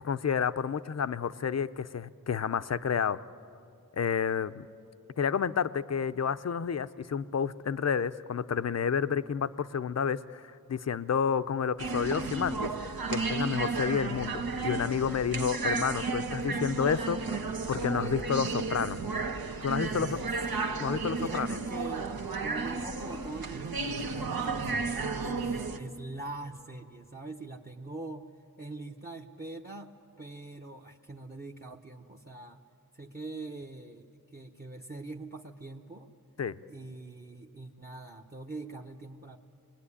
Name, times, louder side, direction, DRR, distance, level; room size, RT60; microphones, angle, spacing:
voice 1, 0.0-3.2 3.9-4.7 5.2-12.7 13.1-19.0 19.6-20.2 20.8-21.6 36.4-36.5, left 7 dB, 45° left, 13 dB, 0.6 m, -30 dB
sound 1, 11.8-25.8, right 4 dB, 75° right, 1.4 m, -33 dB
voice 2, 19.8-20.3 21.2-22.1 22.4-28.2 28.6-32.6 32.9-36.1 36.7-39.4, right 2 dB, 25° right, 5 dB, 1.0 m, -43 dB
26.5 x 21.0 x 9.9 m, 2.7 s
wide cardioid pair, 95°, 36 cm